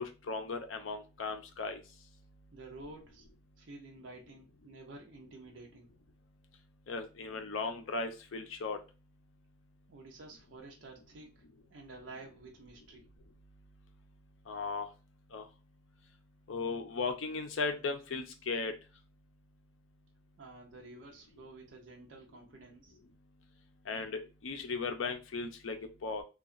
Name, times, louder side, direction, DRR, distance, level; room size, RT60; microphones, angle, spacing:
voice 1, 0.0-1.8 6.9-8.8 14.5-14.9 15.3-15.5 16.5-18.7 23.9-26.2, left 4 dB, 85° left, 6 dB, 0.5 m, -36 dB
voice 2, 2.5-3.3 3.6-5.9 9.9-11.4 11.7-13.1 20.4-23.0, right 2 dB, 70° right, 0 dB, 0.6 m, -51 dB
2.8 x 2.3 x 2.4 m, 0.30 s
head